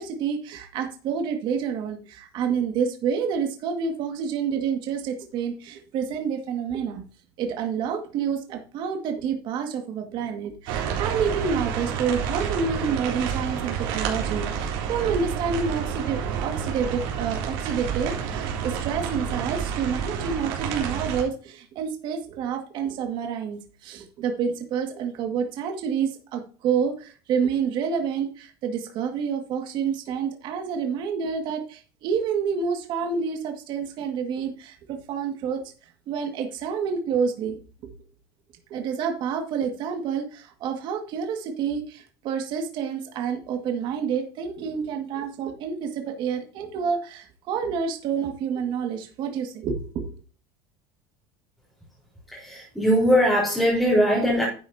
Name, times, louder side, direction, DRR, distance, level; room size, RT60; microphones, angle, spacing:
voice 1, 0.0-7.0 7.4-35.6 36.1-37.6 38.7-50.1, right 6 dB, 45° right, 4 dB, 2.0 m, -28 dB
sound 1, 10.7-21.2, right 7 dB, 70° right, 3.5 m, -29 dB
voice 2, 52.3-54.4, equal, ahead, -7 dB, 4.2 m, -20 dB
11.0 x 8.6 x 2.8 m, 0.38 s
cardioid pair, 160°, 11 cm